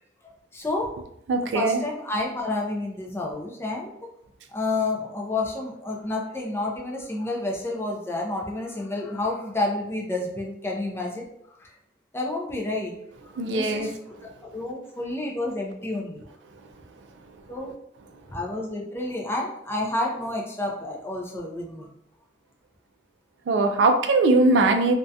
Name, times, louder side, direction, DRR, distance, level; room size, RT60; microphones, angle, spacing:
voice 1, 0.2-0.9 1.4-4.0 4.5-11.7 12.1-12.9 13.2-16.2 17.5-17.7 18.3-21.9, left 2 dB, 15° left, -1 dB, 0.3 m, -30 dB
voice 2, 1.3-1.8 13.4-13.9 23.5-24.9, right 3 dB, 75° right, 6 dB, 0.3 m, -20 dB
2.3 x 2.1 x 2.6 m, 0.76 s
head